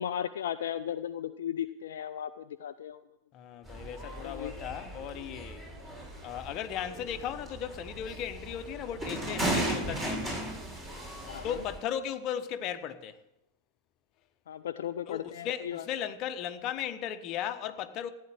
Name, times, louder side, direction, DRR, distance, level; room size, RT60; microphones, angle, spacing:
voice 1, 0.0-3.0 4.1-4.5 11.2-11.6 14.5-15.9, left 10 dB, 60° left, 0.5 m, -36 dB
voice 2, 3.3-5.6 6.2-10.2 11.4-13.2 15.1-18.1, left 9 dB, 35° left, 1.1 m, -36 dB
sound 1, 3.7-11.8, right 1 dB, 20° right, 6.9 m, -36 dB
15.0 x 9.7 x 8.7 m
figure-of-eight pair, 90°, 0 cm